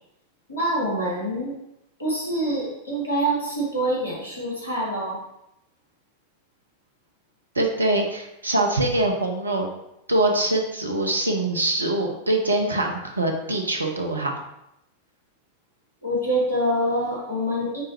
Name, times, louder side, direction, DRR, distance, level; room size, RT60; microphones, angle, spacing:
voice 1, 0.5-1.5 2.0-5.2 16.0-17.8, right 1 dB, 80° left, -4 dB, 2.1 m, -25 dB
voice 2, 7.5-9.7 10.1-14.3, right 2 dB, 80° right, 3 dB, 0.9 m, -23 dB
8.8 x 3.8 x 2.9 m, 0.85 s
figure-of-eight pair, 90°, 0 cm